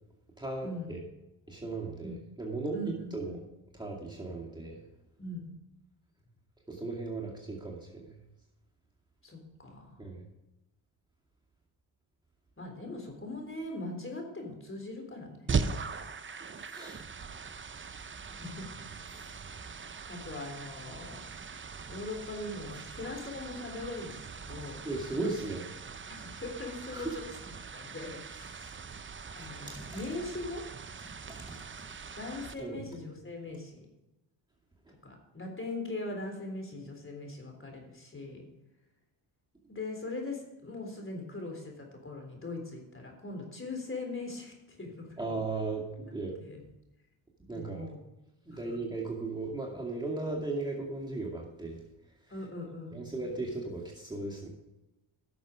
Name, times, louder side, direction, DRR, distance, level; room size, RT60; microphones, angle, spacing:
voice 1, 0.4-1.0 1.5-3.4 3.7-4.8 6.7-8.2 10.0-10.2 16.7-17.0 18.3-18.4 19.1-19.3 24.8-25.7 26.9-27.1 28.6-28.7 29.7-29.9 31.5-31.6 32.6-32.8 45.2-46.4 47.5-47.9 48.5-51.8 52.9-54.5, right 3 dB, 10° right, -3 dB, 2.3 m, -37 dB
voice 2, 2.7-3.1 5.2-5.5 9.2-10.0 12.6-15.8 18.3-18.7 19.1-19.2 20.1-21.2 21.9-24.8 26.2-27.2 27.7-28.8 29.4-30.6 32.2-33.9 35.0-38.5 39.7-45.2 46.4-46.6 47.5-48.0 48.5-48.6 52.3-53.1, left 2 dB, 25° left, 2 dB, 3.6 m, -40 dB
sound 1, 15.5-32.5, right 5 dB, 25° right, 0.7 m, -40 dB
11.5 x 6.7 x 5.0 m, 0.96 s
cardioid pair, 65°, 48 cm